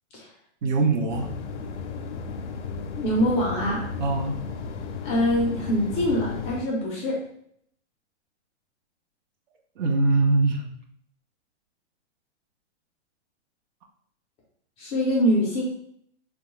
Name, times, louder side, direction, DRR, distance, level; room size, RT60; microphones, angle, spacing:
voice 1, 0.6-1.3 4.0-4.4 9.8-10.7, right 3 dB, 45° right, 3 dB, 0.5 m, -22 dB
sound 1, 1.1-6.7, left 5 dB, 90° left, 0.5 m, -34 dB
voice 2, 3.0-3.8 5.0-7.2 14.8-15.6, equal, 20° left, -2 dB, 0.4 m, -24 dB
2.9 x 2.2 x 3.0 m, 0.68 s
hypercardioid pair, 135°, 34 cm